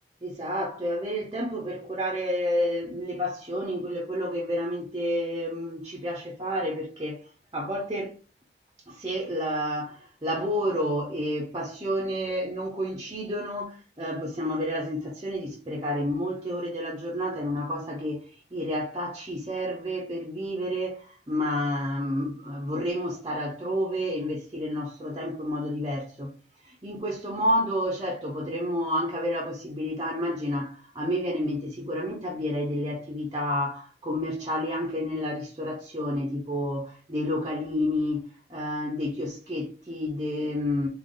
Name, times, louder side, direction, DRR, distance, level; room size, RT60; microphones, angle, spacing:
voice 1, 0.2-7.2 7.5-8.2 8.9-26.3 26.6-40.9, equal, 25° right, 0.7 m, -30 dB
3.8 x 2.9 x 3.8 m
head